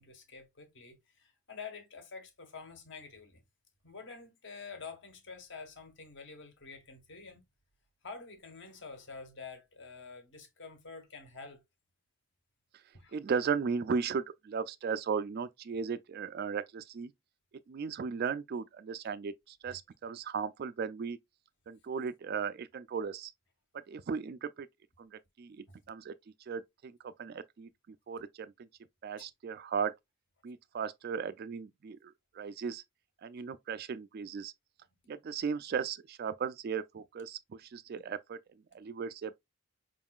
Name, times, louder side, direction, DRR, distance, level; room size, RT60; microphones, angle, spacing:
voice 1, 0.0-3.4 3.8-7.4 8.0-11.6 12.9-13.2 25.7-25.8, left 4 dB, 55° left, 1.4 m, -48 dB
voice 2, 13.1-17.1 17.7-21.2 21.7-23.3 23.9-24.7 25.0-25.1 25.4-26.1 26.5-27.7 28.1-28.5 29.0-29.9 30.4-32.0 32.4-32.8 33.2-34.5 35.1-37.4 37.7-38.4 38.7-39.4, right 6 dB, 45° right, 0.3 m, -36 dB
5.2 x 3.6 x 2.3 m
head